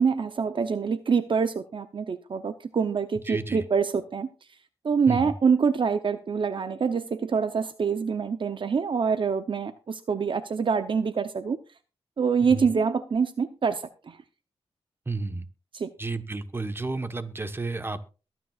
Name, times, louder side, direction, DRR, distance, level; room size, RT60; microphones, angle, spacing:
voice 1, 0.0-4.3 4.8-11.6 12.2-14.2 15.7-15.9, right 5 dB, 55° right, 10 dB, 0.8 m, -25 dB
voice 2, 3.3-3.6 5.1-5.3 12.5-12.7 15.1-15.4 16.0-18.0, right 3 dB, 20° right, 10 dB, 1.3 m, -31 dB
22.5 x 9.2 x 2.5 m, 0.33 s
cardioid pair, 85°, 10 cm